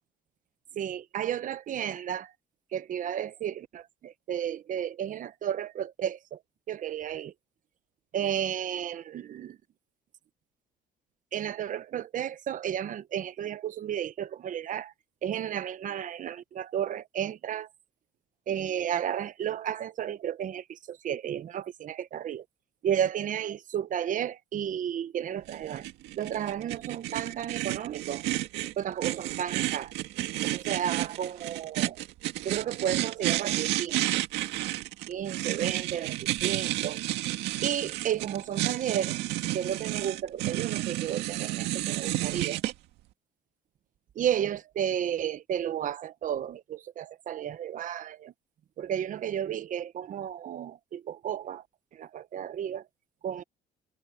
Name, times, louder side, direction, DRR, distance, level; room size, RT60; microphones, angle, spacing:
voice 1, 0.7-2.3 2.7-6.4 6.7-7.3 8.1-9.6 11.3-14.9 15.2-17.7 18.5-22.4 22.8-25.9 26.2-28.2 28.8-29.9 30.5-32.0 32.4-34.0 35.1-36.2 36.4-37.0 37.6-39.2 39.5-42.6 44.1-48.3 48.8-51.6 51.9-52.9 53.2-53.4, right 9 dB, 50° right, 1.0 m, -33 dB
sound 1, 25.5-42.7, right 16 dB, 90° right, 2.0 m, -31 dB
cardioid pair, 110°, 17 cm